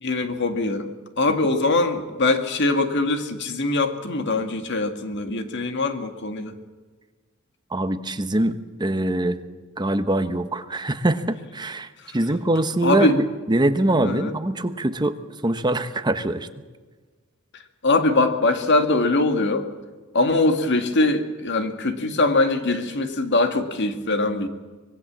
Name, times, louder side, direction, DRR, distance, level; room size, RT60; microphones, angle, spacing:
voice 1, 0.0-0.9 1.2-6.5 12.1-12.2 12.8-13.2 14.0-14.3 17.8-19.7 20.1-24.5, left 2 dB, 55° left, 7 dB, 2.0 m, -22 dB
voice 2, 7.7-9.4 9.8-15.1 15.4-16.5, right 1 dB, 20° right, 10 dB, 1.1 m, -23 dB
25.0 x 20.0 x 7.5 m, 1.4 s
head